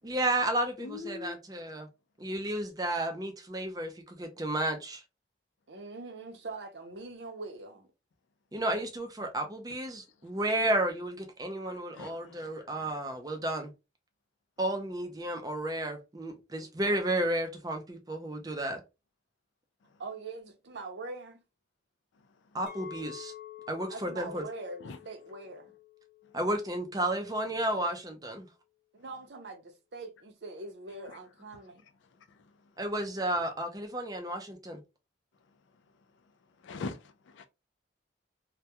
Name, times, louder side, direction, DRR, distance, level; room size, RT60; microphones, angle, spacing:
voice 1, 0.0-1.9 2.2-5.0 8.5-13.7 14.6-18.8 22.5-23.3 23.7-24.4 26.3-28.5 32.8-34.8, right 1 dB, 20° right, 0.4 m, -32 dB
voice 2, 0.8-1.4 11.7-12.9 24.8-25.0 32.3-32.5 36.6-37.4, left 4 dB, 85° left, 0.4 m, -43 dB
voice 3, 5.7-7.9 16.6-16.7 20.0-21.4 23.9-25.7 28.9-31.9, right 3 dB, 70° right, 0.6 m, -43 dB
Chink clink, 22.7-27.8, left 12 dB, 65° left, 0.8 m, -50 dB
2.2 x 2.2 x 2.8 m
head